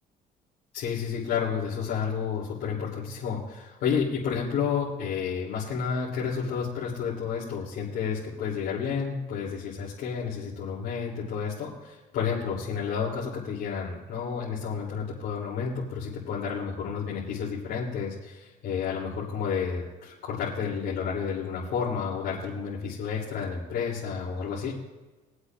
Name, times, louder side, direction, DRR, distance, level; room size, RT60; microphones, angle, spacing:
voice 1, 0.7-24.7, left 6 dB, 80° left, -7 dB, 3.0 m, -31 dB
23.5 x 8.1 x 2.4 m, 1.2 s
cardioid pair, 110°, 17 cm